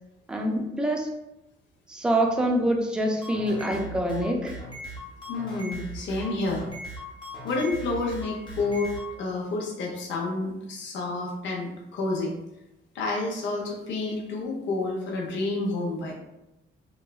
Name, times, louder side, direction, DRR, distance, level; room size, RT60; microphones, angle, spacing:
voice 1, 0.3-1.1 1.9-4.6, right 1 dB, 5° right, 1 dB, 0.4 m, -25 dB
sound 1, 3.2-9.1, equal, 25° left, 0.7 m, -39 dB
voice 2, 5.3-6.7 7.4-12.3 12.9-16.1, left 2 dB, 70° left, -2 dB, 0.6 m, -29 dB
3.0 x 2.2 x 2.2 m, 0.93 s
cardioid pair, 90°, 20 cm